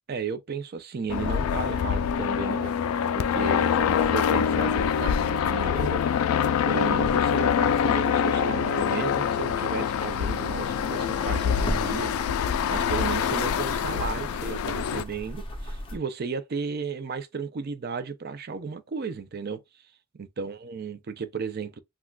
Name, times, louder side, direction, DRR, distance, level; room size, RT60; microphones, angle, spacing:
voice 1, 0.1-2.8 3.1-6.0 6.3-19.6 20.1-21.8, right 5 dB, 45° right, 0.4 m, -34 dB
sound 1, 1.1-15.0, left 8 dB, 90° left, 0.3 m, -25 dB
sound 2, 9.9-16.0, left 1 dB, 25° left, 0.5 m, -37 dB
3.6 x 2.2 x 2.2 m
head